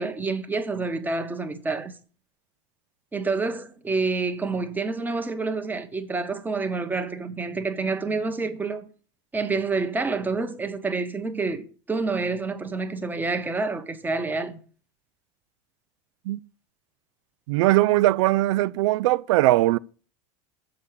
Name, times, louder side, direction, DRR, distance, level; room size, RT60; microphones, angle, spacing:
voice 1, 0.0-1.9 3.1-8.9 9.3-14.6, right 3 dB, 10° right, 1.0 m, -28 dB
voice 2, 17.5-19.8, right 17 dB, 80° right, 0.4 m, -20 dB
7.1 x 6.0 x 6.7 m
supercardioid pair, 130°, 15 cm